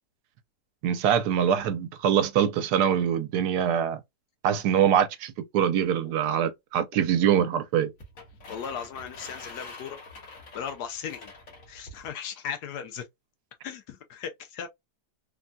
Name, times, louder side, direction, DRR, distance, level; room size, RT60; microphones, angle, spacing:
voice 1, 0.8-4.0 4.4-7.9, right 9 dB, 80° right, 1.1 m, -24 dB
sound 1, 8.0-12.1, left 3 dB, 55° left, 1.5 m, -45 dB
voice 2, 8.5-10.0 10.5-11.3 11.7-13.1 13.6-14.7, left 8 dB, 80° left, 1.1 m, -37 dB
3.5 x 2.1 x 2.5 m
omnidirectional pair, 1.8 m